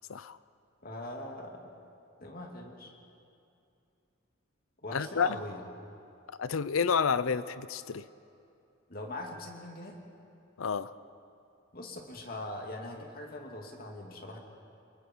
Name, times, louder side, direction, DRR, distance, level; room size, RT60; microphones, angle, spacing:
voice 1, 0.8-1.6 2.2-2.9 4.8-5.6 8.9-10.0 11.7-14.4, left 1 dB, 45° left, 1 dB, 2.5 m, -41 dB
voice 2, 4.9-5.3 6.4-8.1 10.6-10.9, left 6 dB, 85° left, 16 dB, 0.6 m, -29 dB
29.0 x 21.0 x 4.6 m, 2.6 s
head